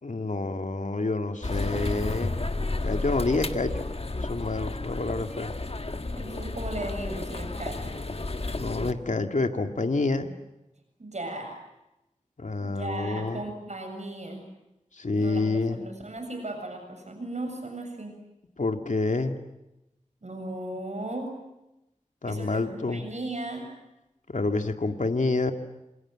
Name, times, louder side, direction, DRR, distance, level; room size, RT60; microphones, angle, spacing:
voice 1, 0.0-2.3 2.8-5.5 8.6-10.3 12.4-13.4 15.0-15.8 18.6-19.4 22.2-23.1 24.3-25.5, left 3 dB, 75° left, 6 dB, 2.3 m, -28 dB
sound 1, 1.4-8.9, left 2 dB, 50° left, 1.6 m, -32 dB
voice 2, 6.1-7.9 11.0-11.6 12.6-14.4 15.2-18.2 20.2-21.4 22.2-23.7, right 2 dB, 60° right, 4 dB, 7.4 m, -36 dB
27.5 x 27.0 x 7.6 m, 0.93 s
wide cardioid pair, 65°, 13 cm